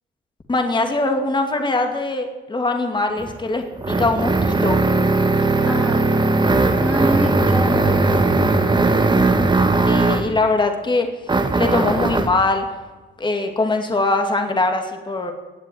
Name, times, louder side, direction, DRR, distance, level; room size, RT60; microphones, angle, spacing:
voice 1, 0.5-4.8 9.9-11.1 11.5-12.6 13.2-15.3, left 2 dB, 25° left, 4 dB, 2.4 m, -21 dB
sound 1, 3.2-10.4 11.3-12.4, right 3 dB, 20° right, 1.5 m, -18 dB
voice 2, 5.6-6.2 6.8-8.3, equal, 5° left, -2 dB, 2.3 m, -26 dB
19.0 x 7.5 x 9.6 m, 1.2 s
cardioid pair, 90°, 20 cm